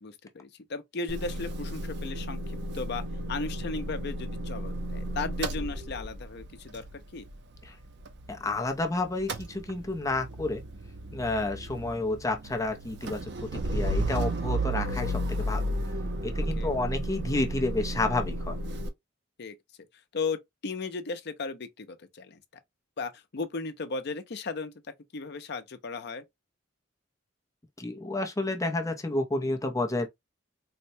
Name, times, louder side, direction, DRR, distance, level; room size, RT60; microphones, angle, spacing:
voice 1, 0.0-3.0 3.3-6.9 7.1-7.3 16.5-16.7 19.4-19.6 20.1-22.4 23.0-24.7 25.1-26.2, left 4 dB, 60° left, 0.6 m, -36 dB
Motor vehicle (road) / Engine starting / Idling, 1.1-8.8 9.1-18.9, right 1 dB, 60° right, 0.7 m, -33 dB
voice 2, 8.3-10.6 11.1-15.7 16.2-18.6 27.8-30.1, left 2 dB, 15° left, 0.6 m, -30 dB
4.1 x 2.2 x 2.7 m
head